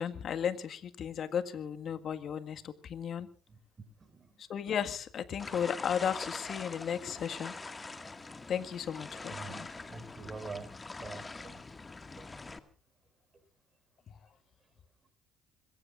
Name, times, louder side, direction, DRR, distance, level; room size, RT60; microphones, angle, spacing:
voice 1, 0.0-3.3 4.5-7.5 8.5-9.7, left 8 dB, 50° left, 9 dB, 1.8 m, -35 dB
voice 2, 4.0-4.4 9.3-10.7 11.0-11.5 12.2-12.3, right 4 dB, 30° right, 9 dB, 5.4 m, -45 dB
sound 1, 5.4-12.6, left 3 dB, 20° left, 2.0 m, -44 dB
26.5 x 21.5 x 2.6 m, 0.39 s
hypercardioid pair, 55°, 0 cm